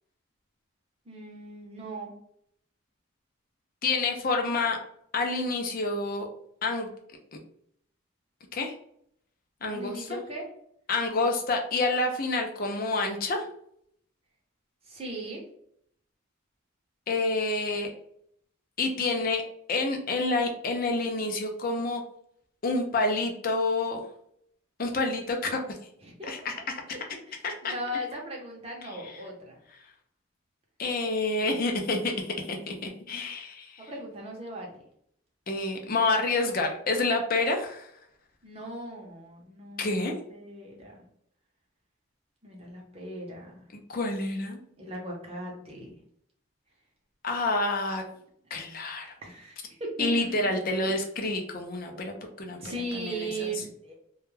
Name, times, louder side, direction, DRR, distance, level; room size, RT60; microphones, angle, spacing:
voice 1, 1.1-2.1 9.7-10.5 14.8-15.4 26.0-26.3 27.3-29.6 33.9-34.8 38.4-40.9 42.4-43.6 44.8-45.9 49.2-50.5 50.8-50.9 52.6-53.9, right 1 dB, 30° right, -1 dB, 0.7 m, -38 dB
voice 2, 3.8-4.8 5.1-6.3 6.6-6.9 8.5-8.7 9.6-10.1 10.9-13.5 17.1-17.9 18.8-19.4 19.7-22.0 22.6-24.0 24.8-25.8 26.3-26.5 27.4-27.7 29.0-29.1 30.8-32.1 32.5-33.8 35.5-37.9 39.8-40.1 43.9-44.6 47.2-48.0 48.5-49.1 50.0-52.6 52.9-53.5, left 3 dB, 40° left, 3 dB, 0.4 m, -28 dB
2.2 x 2.1 x 3.1 m, 0.69 s
head